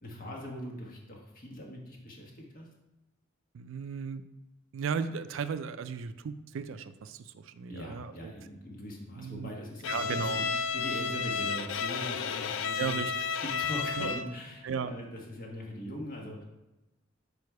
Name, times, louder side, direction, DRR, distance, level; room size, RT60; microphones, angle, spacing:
voice 1, 0.0-2.7 7.7-16.4, equal, 45° left, -1 dB, 1.4 m, -41 dB
voice 2, 3.5-4.2 4.7-8.3 9.2-9.5 9.9-10.4 12.8-13.1 14.0-14.1 14.6-14.9, right 6 dB, 75° right, 12 dB, 0.4 m, -35 dB
Bowed string instrument, 9.8-14.4, left 5 dB, 70° left, 0.4 m, -32 dB
5.1 x 4.7 x 4.6 m, 1.0 s
head